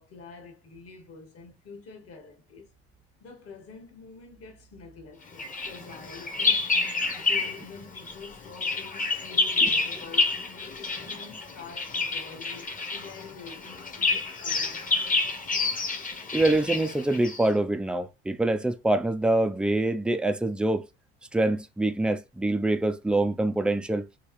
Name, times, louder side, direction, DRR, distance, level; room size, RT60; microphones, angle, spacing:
voice 1, 0.0-2.7 3.2-6.7 7.1-15.6, left 4 dB, 45° left, 1.5 m, -47 dB
Bird vocalization bird call bird song, 5.4-7.7 8.0-17.5, left 3 dB, 25° left, 1.0 m, -28 dB
voice 2, 16.3-20.9 21.3-24.0, right 2 dB, 5° right, 0.5 m, -25 dB
3.7 x 2.3 x 3.0 m
hypercardioid pair, 60°, 33 cm